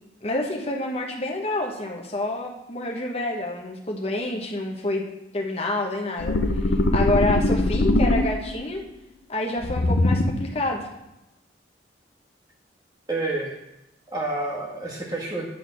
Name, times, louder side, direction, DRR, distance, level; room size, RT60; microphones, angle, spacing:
voice 1, 0.2-5.0 5.3-8.8 9.3-10.8, left 2 dB, 35° left, 0 dB, 1.0 m, -28 dB
sound 1, 6.2-8.7 9.6-10.6, left 1 dB, 80° left, 0.7 m, -22 dB
voice 2, 13.1-13.6 14.1-15.5, right 2 dB, 20° right, -2 dB, 1.6 m, -28 dB
8.7 x 4.0 x 6.3 m, 0.91 s
head